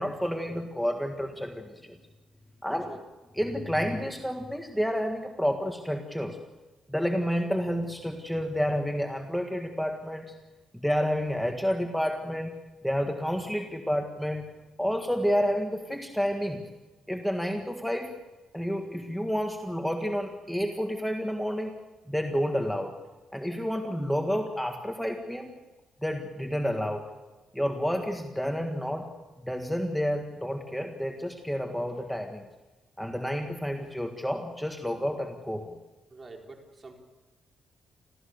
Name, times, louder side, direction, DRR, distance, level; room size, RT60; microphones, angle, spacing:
voice 1, 0.0-2.0 2.6-2.9 3.4-6.4 6.9-10.4 10.7-14.5 14.8-16.7 17.1-18.1 18.5-21.7 22.1-22.9 23.3-25.5 26.0-27.1 27.5-29.1 29.4-32.4 33.0-35.7, equal, ahead, 4 dB, 1.7 m, -30 dB
voice 2, 36.1-37.0, right 3 dB, 30° right, 2 dB, 4.3 m, -46 dB
29.0 x 14.0 x 6.8 m, 1.2 s
cardioid pair, 90°, 0 cm